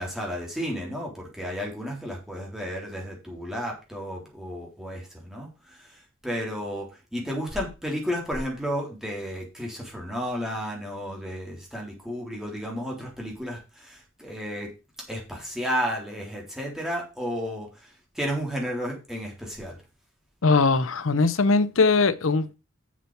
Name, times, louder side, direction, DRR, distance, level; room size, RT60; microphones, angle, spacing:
voice 1, 0.0-14.7 15.1-17.9 18.1-19.8, equal, 5° right, 3.8 m, -32 dB
voice 2, 20.4-22.5, left 4 dB, 80° left, 0.8 m, -21 dB
7.4 x 7.2 x 5.7 m
head